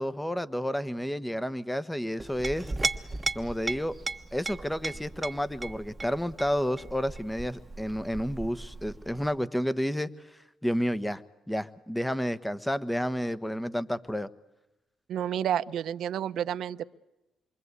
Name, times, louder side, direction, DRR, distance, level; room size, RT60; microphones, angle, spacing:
voice 1, 0.0-2.7 3.3-3.9 4.3-10.1 10.6-11.2 11.5-14.3, equal, 5° left, 15 dB, 1.2 m, -30 dB
Chink clink, 2.2-9.3, right 3 dB, 20° right, 1.2 m, -36 dB
voice 2, 15.1-16.8, right 10 dB, 70° right, 13 dB, 0.9 m, -30 dB
28.0 x 24.0 x 8.3 m, 0.98 s
cardioid pair, 90°, 0 cm